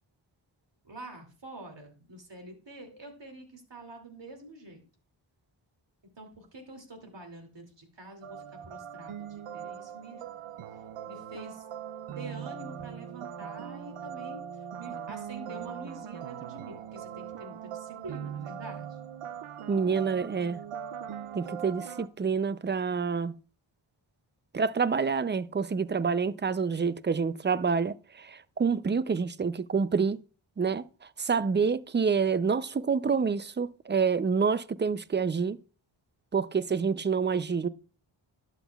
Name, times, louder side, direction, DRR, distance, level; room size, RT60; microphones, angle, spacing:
voice 1, 0.8-4.8 6.2-10.2 11.1-11.7 12.1-19.0, right 2 dB, 60° right, 2.7 m, -46 dB
sound 1, 8.2-22.1, right 8 dB, 90° right, 0.6 m, -41 dB
voice 2, 19.7-20.6 21.3-23.3 24.5-30.2 30.6-30.8 31.2-35.6 36.3-37.7, right 5 dB, 25° right, 0.4 m, -27 dB
12.0 x 8.1 x 2.3 m
cardioid pair, 45°, 50 cm